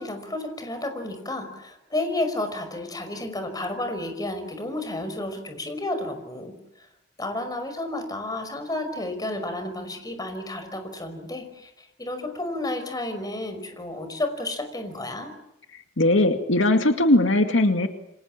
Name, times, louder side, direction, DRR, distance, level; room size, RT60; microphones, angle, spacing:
voice 1, 0.0-6.5 7.2-15.3, left 2 dB, 20° left, 7 dB, 5.4 m, -31 dB
voice 2, 15.7-17.9, left 1 dB, 85° left, 5 dB, 2.2 m, -20 dB
28.5 x 25.5 x 7.5 m, 0.84 s
head